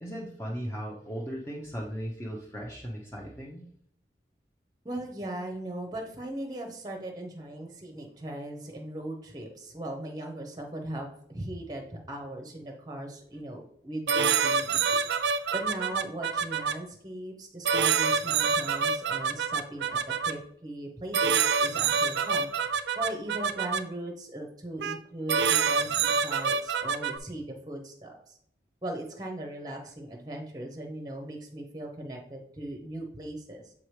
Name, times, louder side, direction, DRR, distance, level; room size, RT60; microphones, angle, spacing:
voice 1, 0.0-3.6, equal, 15° left, -3 dB, 0.7 m, -37 dB
voice 2, 4.8-15.0 15.5-28.4 28.8-33.7, right 1 dB, 20° right, 3 dB, 0.8 m, -39 dB
sound 1, 14.1-16.7 17.7-20.3 21.1-23.8 24.8-25.0 25.3-27.2, right 6 dB, 75° right, 0.4 m, -26 dB
7.3 x 4.7 x 3.2 m, 0.68 s
head